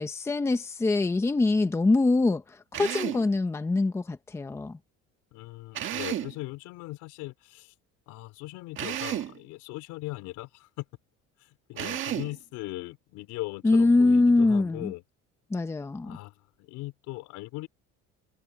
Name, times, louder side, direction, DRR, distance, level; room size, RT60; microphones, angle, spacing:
voice 1, 0.0-4.8 13.6-14.9 15.5-16.2, left 3 dB, 10° left, 0.8 m, -24 dB
Drill, 2.7-3.3 5.7-6.4 8.8-9.4 11.8-12.4, right 11 dB, 40° right, 1.8 m, -32 dB
voice 2, 5.3-7.7 8.1-10.8 11.4-15.0 16.0-17.7, left 19 dB, 80° left, 4.3 m, -39 dB
cardioid pair, 175°, 30 cm